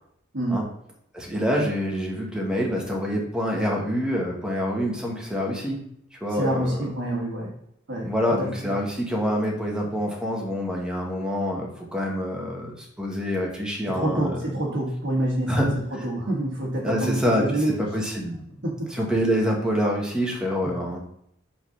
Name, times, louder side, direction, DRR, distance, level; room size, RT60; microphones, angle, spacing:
voice 1, 1.1-6.9 8.0-14.4 15.5-16.0 16.8-18.3 18.9-21.0, equal, 5° right, -2 dB, 1.5 m, -26 dB
voice 2, 6.3-7.5 7.9-8.1 8.4-8.5 13.9-15.6 16.0-18.0 18.6-18.9, right 1 dB, 55° right, -1 dB, 1.5 m, -27 dB
5.8 x 3.9 x 5.7 m, 0.73 s
head